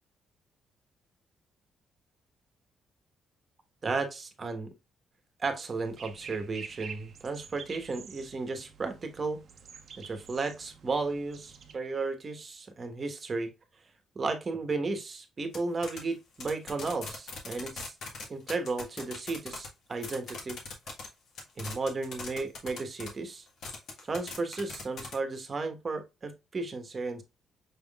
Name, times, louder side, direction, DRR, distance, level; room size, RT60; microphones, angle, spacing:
voice 1, 3.8-4.7 5.4-9.4 10.0-13.5 14.1-17.9 18.3-20.6 21.6-23.5 24.0-27.2, right 3 dB, 35° right, 1.3 m, -34 dB
sound 1, 5.8-11.8, right 6 dB, 55° right, 0.8 m, -48 dB
sound 2, 15.5-15.6 15.8-16.0 16.3-19.7 20.0-21.1 21.4-23.1 23.6-25.1, left 4 dB, 70° left, 1.6 m, -39 dB
6.2 x 3.6 x 2.4 m
cardioid pair, 90°, 0 cm